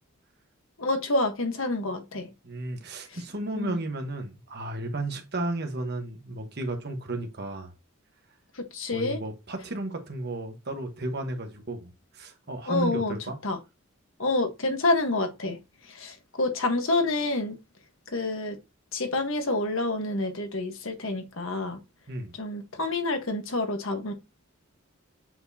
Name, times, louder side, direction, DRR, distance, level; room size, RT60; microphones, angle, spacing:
voice 1, 0.8-2.2 3.5-3.8 8.7-9.2 12.7-13.1 13.4-13.6 14.2-15.6 15.9-17.6 18.1-18.6 18.9-21.8 22.4-24.1, left 2 dB, 70° left, 1.4 m, -28 dB
voice 2, 2.4-7.7 8.9-13.4 22.1-22.3, right 2 dB, 50° right, 1.3 m, -33 dB
7.7 x 4.3 x 2.8 m
head